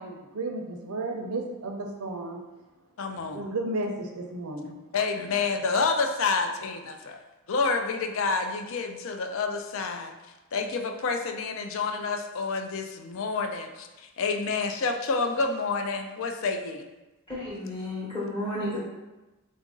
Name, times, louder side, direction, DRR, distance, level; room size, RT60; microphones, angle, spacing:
voice 1, 0.0-2.4 3.3-4.8, right 2 dB, 75° right, 3 dB, 0.6 m, -33 dB
voice 2, 3.0-3.4 4.9-7.2 7.5-10.1 10.5-16.9, left 4 dB, 60° left, 5 dB, 0.4 m, -28 dB
voice 3, 17.3-18.8, left 1 dB, 20° left, -7 dB, 0.9 m, -32 dB
3.8 x 2.5 x 3.7 m, 1.1 s
head